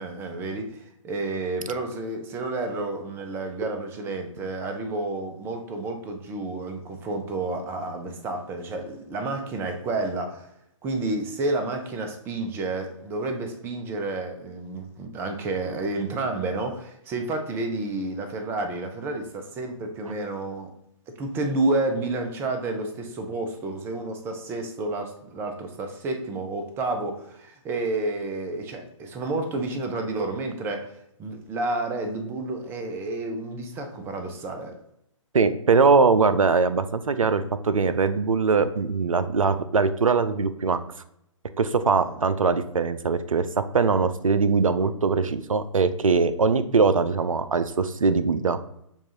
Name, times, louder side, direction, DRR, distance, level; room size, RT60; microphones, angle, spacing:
voice 1, 0.0-10.5 10.8-20.7 21.2-30.9 31.2-34.8 42.0-42.2, right 2 dB, 15° right, 5 dB, 0.5 m, -30 dB
voice 2, 35.3-40.8 41.6-43.5 43.7-48.6, right 4 dB, 90° right, 12 dB, 0.4 m, -21 dB
7.0 x 2.4 x 2.8 m, 0.77 s
figure-of-eight pair, 130°, 17 cm